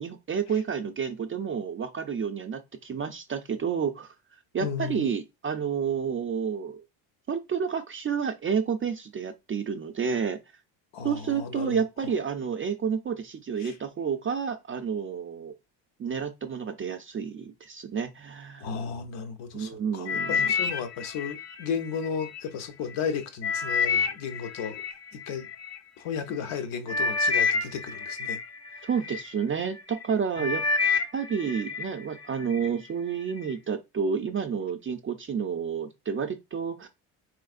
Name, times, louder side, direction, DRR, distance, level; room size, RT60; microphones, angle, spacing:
voice 1, 0.0-4.1 4.5-6.8 7.3-10.4 11.0-15.5 16.0-18.7 19.5-20.4 28.8-30.6 31.1-36.9, right 6 dB, 30° right, 0.3 m, -30 dB
voice 2, 4.6-5.1 10.9-11.8 13.6-13.7 18.6-24.8 25.1-25.5 26.0-28.4 30.4-30.5, left 6 dB, 70° left, 0.8 m, -34 dB
sound 1, 20.1-22.4 22.9-25.8 26.5-26.6 26.9-29.3 29.8-30.1 30.4-31.9 32.2-32.7 33.3-33.4, left 4 dB, 35° left, 0.6 m, -28 dB
3.4 x 3.1 x 2.4 m
supercardioid pair, 85°, 50 cm